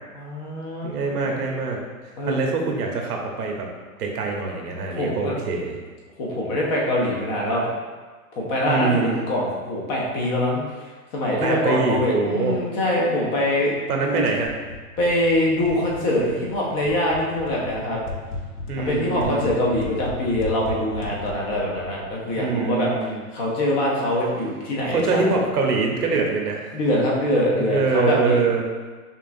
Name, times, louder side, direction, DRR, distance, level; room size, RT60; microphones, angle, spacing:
voice 1, 0.1-1.0 2.2-2.4 4.9-5.4 6.2-7.6 8.3-13.8 14.1-14.3 15.0-18.0 18.8-22.9 23.3-25.2 26.7-28.4, left 1 dB, 25° left, -3 dB, 0.6 m, -24 dB
voice 2, 0.8-1.8 2.3-3.7 4.0-5.8 8.6-9.3 11.4-12.6 13.9-14.6 18.7-19.6 22.2-23.2 24.9-26.7 27.5-28.6, right 4 dB, 90° right, 1 dB, 0.9 m, -24 dB
sound 1, 14.4-23.1, left 2 dB, 75° left, 0.8 m, -36 dB
5.4 x 2.4 x 2.6 m, 1.4 s
hypercardioid pair, 140°, 45 cm